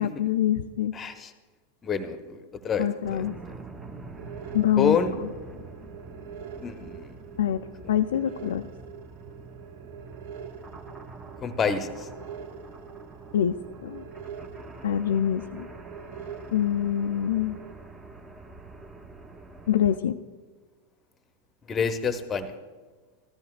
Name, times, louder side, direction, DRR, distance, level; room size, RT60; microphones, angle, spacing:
voice 1, 0.0-0.9 2.8-3.3 4.5-5.0 7.4-7.6 7.9-8.7 13.3-14.0 14.8-15.7 16.5-17.6 19.7-20.2, left 10 dB, 60° left, 8 dB, 0.3 m, -25 dB
voice 2, 0.9-1.3 1.8-3.2 4.8-5.1 6.5-7.2 11.4-12.1 21.6-22.6, left 5 dB, 20° left, 10 dB, 0.7 m, -28 dB
sound 1, 3.0-20.0, right 3 dB, 15° right, 0.8 m, -45 dB
sound 2, 4.2-17.7, right 7 dB, 50° right, 0.6 m, -45 dB
14.5 x 13.5 x 2.3 m, 1.4 s
figure-of-eight pair, 90°, 0 cm